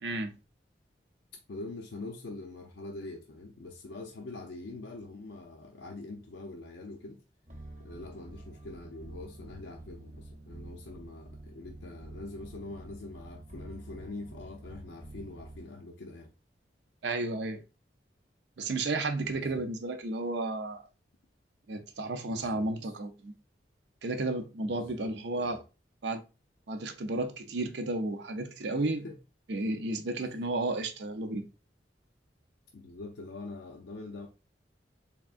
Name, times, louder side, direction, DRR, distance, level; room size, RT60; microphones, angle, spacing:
voice 1, 0.0-0.3 17.0-17.6 18.6-20.8 21.7-23.3 24.0-25.6 26.0-26.2 26.7-29.0 29.5-31.5, right 2 dB, 70° right, 0.5 m, -32 dB
voice 2, 1.5-7.2 7.8-16.3 19.2-19.7 22.3-22.9 24.6-25.6 28.9-29.2 30.3-30.5 32.7-34.3, left 2 dB, 75° left, 0.5 m, -44 dB
sound 1, 7.5-15.7, right 1 dB, 45° right, 0.8 m, -48 dB
3.5 x 3.5 x 2.4 m
head